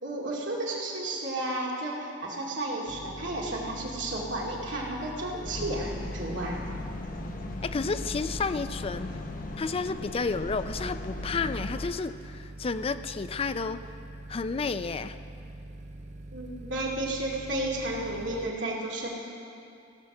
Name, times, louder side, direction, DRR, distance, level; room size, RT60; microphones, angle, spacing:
voice 1, 0.0-6.6 16.3-19.1, right 1 dB, 80° right, -3 dB, 2.2 m, -32 dB
sound 1, 2.9-18.5, right 2 dB, 40° right, 0.5 m, -44 dB
sound 2, 5.4-11.9, left 2 dB, 45° left, 0.8 m, -38 dB
voice 2, 7.6-9.2 9.6-13.8 14.3-15.2, left 4 dB, 30° left, 11 dB, 0.4 m, -31 dB
16.0 x 6.4 x 7.1 m, 2.6 s
head